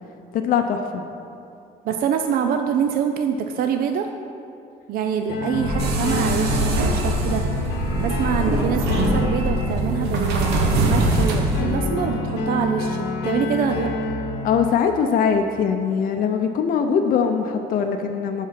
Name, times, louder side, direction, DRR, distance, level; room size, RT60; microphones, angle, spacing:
voice 1, 0.3-1.0 14.4-18.5, left 6 dB, 55° left, 5 dB, 0.6 m, -21 dB
voice 2, 1.8-4.1 4.9-13.9, right 7 dB, 60° right, 6 dB, 0.5 m, -25 dB
sound 1, 5.3-14.7, left 2 dB, 90° left, 1.0 m, -27 dB
sound 2, 5.6-6.0 6.4-7.3 7.5-8.6 8.9-9.9 10.2-11.0, equal, 25° right, 1.8 m, -28 dB
sound 3, 5.8-11.6, right 2 dB, 90° right, 1.0 m, -23 dB
7.4 x 5.8 x 5.9 m, 2.6 s
cardioid pair, 110°, 17 cm